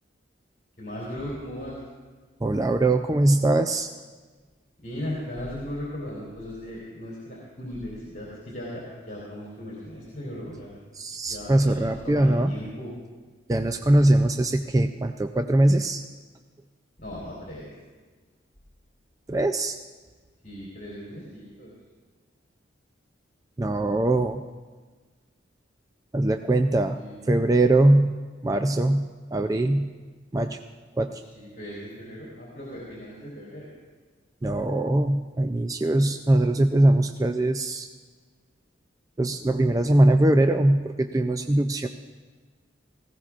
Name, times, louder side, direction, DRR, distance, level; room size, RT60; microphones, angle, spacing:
voice 1, 0.8-1.8 4.8-10.8 11.2-12.9 17.0-17.7 20.4-21.7 26.9-27.2 31.1-33.7, left 1 dB, 45° left, -6 dB, 3.6 m, -37 dB
voice 2, 2.4-3.9 11.0-12.5 13.5-16.0 19.3-19.8 23.6-24.4 26.1-27.0 27.3-28.2 28.4-29.9 30.3-30.6 31.0-31.2 34.4-37.9 39.2-41.9, right 1 dB, 20° right, 6 dB, 0.3 m, -21 dB
19.0 x 16.0 x 2.5 m, 1.4 s
head